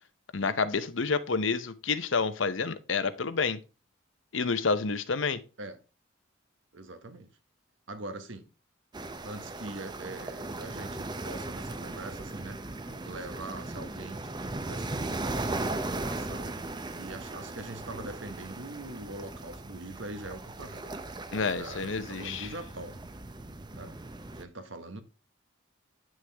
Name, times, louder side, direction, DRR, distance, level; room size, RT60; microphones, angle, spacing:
voice 1, 0.3-3.6 4.3-5.4 21.3-22.5, left 4 dB, 65° left, 0.8 m, -29 dB
voice 2, 6.7-7.3 7.9-8.5 9.2-12.6 13.0-14.3 14.6-16.5 16.9-21.0 21.5-23.0 23.7-23.9 24.3-25.0, right 2 dB, 65° right, 1.4 m, -42 dB
sound 1, 8.9-24.4, right 2 dB, 20° right, 0.6 m, -38 dB
9.5 x 6.4 x 3.4 m
head